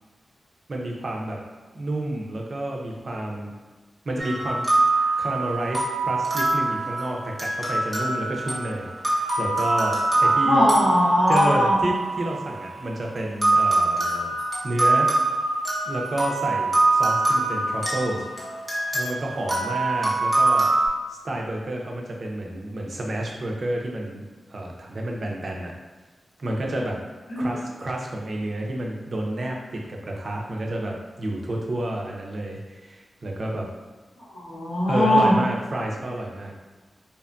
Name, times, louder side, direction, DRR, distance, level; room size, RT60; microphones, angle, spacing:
voice 1, 0.7-1.4 1.7-3.5 4.1-4.6 5.2-10.7 11.3-14.3 14.6-15.1 15.9-18.3 18.9-20.7 21.1-24.2 24.5-25.7 26.4-27.0 27.4-33.7 34.9-36.5, right 1 dB, 50° right, 0 dB, 0.5 m, -30 dB
sound 1, 4.2-12.8 13.4-20.9, right 2 dB, 15° right, 0.8 m, -24 dB
voice 2, 10.2-11.8 27.3-27.6 34.2-35.3, left 1 dB, 90° left, -8 dB, 1.0 m, -20 dB
2.8 x 2.5 x 2.2 m, 1.3 s
wide cardioid pair, 110°, 0 cm